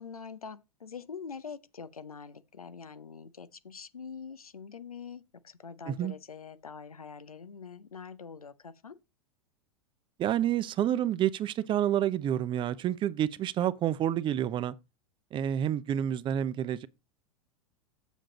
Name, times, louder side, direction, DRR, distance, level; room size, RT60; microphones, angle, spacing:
voice 1, 0.0-9.0, left 6 dB, 85° left, 0.8 m, -44 dB
voice 2, 10.2-14.7 15.3-16.9, right 11 dB, 25° right, 0.6 m, -29 dB
7.5 x 7.2 x 3.9 m
figure-of-eight pair, 95°, 18 cm